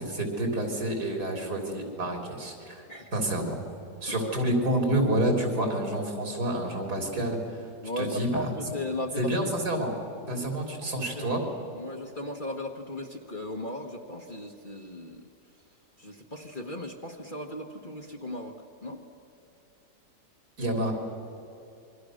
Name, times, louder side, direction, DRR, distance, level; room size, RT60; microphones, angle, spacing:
voice 1, 0.0-2.8 3.1-3.6 4.0-7.4 8.0-8.5 9.2-9.9 10.3-11.4 20.6-20.9, right 1 dB, 65° right, 2 dB, 4.2 m, -28 dB
voice 2, 2.9-3.2 4.1-4.3 7.8-9.5 10.3-10.4 10.8-11.3 11.7-15.2 16.0-19.0, left 1 dB, 30° left, 2 dB, 1.5 m, -37 dB
28.0 x 23.5 x 6.5 m, 2.9 s
omnidirectional pair, 1.8 m